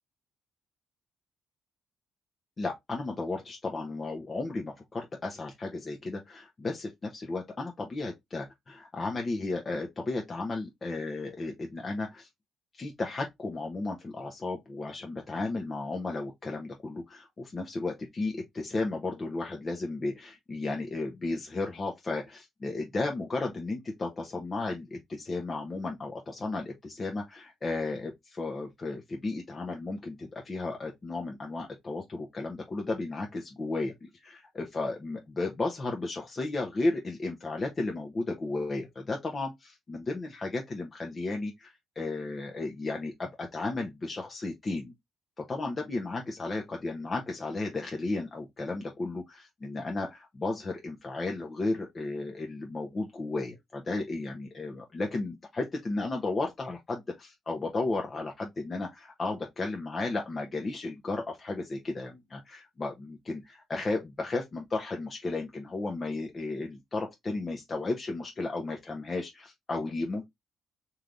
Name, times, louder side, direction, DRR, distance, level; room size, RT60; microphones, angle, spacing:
voice 1, 2.6-12.3 12.7-44.9 45.4-70.2, left 3 dB, 35° left, 0.9 m, -34 dB
3.3 x 2.8 x 3.8 m
cardioid pair, 90°, 0 cm